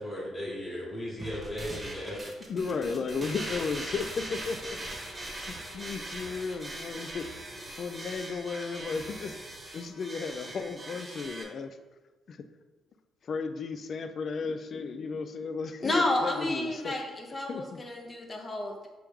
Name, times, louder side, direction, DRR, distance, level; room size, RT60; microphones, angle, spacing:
voice 1, 0.0-2.2, left 1 dB, 15° left, -8 dB, 1.3 m, -36 dB
sound 1, 1.2-11.4, right 1 dB, 25° right, 1.0 m, -41 dB
voice 2, 2.5-5.0 5.5-7.3 7.6-9.4 9.7-11.8 12.3-12.4 13.2-17.0 17.5-17.8, left 5 dB, 55° left, 9 dB, 0.3 m, -35 dB
voice 3, 15.8-18.9, left 2 dB, 30° left, 1 dB, 0.7 m, -30 dB
4.8 x 3.0 x 3.5 m, 1.2 s
cardioid pair, 90°, 0 cm